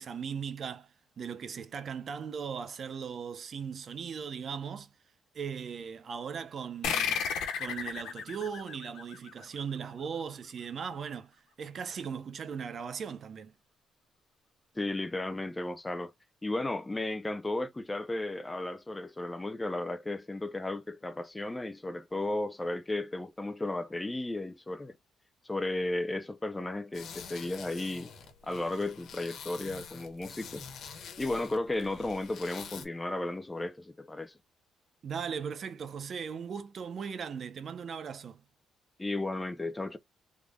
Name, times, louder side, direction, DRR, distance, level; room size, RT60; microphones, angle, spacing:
voice 1, 0.0-4.9 5.3-7.3 7.6-13.5 35.0-38.4, right 6 dB, 55° right, 0.6 m, -38 dB
sound 1, 6.8-9.9, left 7 dB, 85° left, 1.1 m, -34 dB
voice 2, 14.8-16.1 16.4-25.0 25.4-28.1 28.4-30.6 31.2-34.3 39.0-40.0, left 2 dB, 15° left, 0.5 m, -34 dB
sound 2, 26.9-32.9, left 6 dB, 70° left, 1.2 m, -46 dB
3.6 x 3.3 x 2.3 m
cardioid pair, 90°, 0 cm